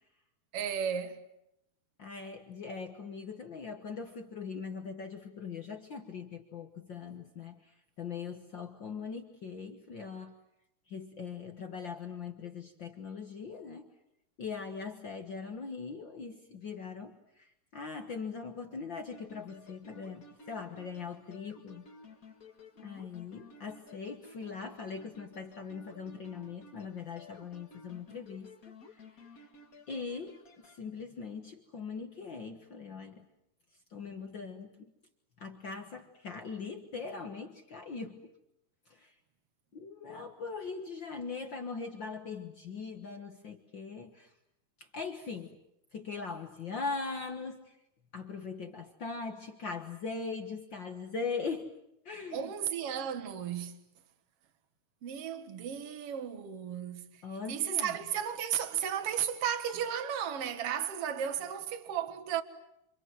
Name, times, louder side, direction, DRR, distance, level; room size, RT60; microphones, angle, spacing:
voice 1, 0.5-1.2 52.3-53.8 55.0-57.2 57.5-62.4, right 9 dB, 50° right, 2.0 m, -34 dB
voice 2, 2.0-7.7 8.0-10.3 10.9-13.9 14.4-21.9 22.8-29.0 29.9-33.2 33.9-34.9 35.4-38.3 38.9-39.1 39.7-44.3 44.9-45.6 45.9-47.7 48.1-51.7 52.0-52.5 57.2-57.9, left 5 dB, 70° left, 1.1 m, -41 dB
sound 1, 19.1-30.8, left 3 dB, 40° left, 1.2 m, -55 dB
28.5 x 27.0 x 7.7 m
omnidirectional pair, 4.4 m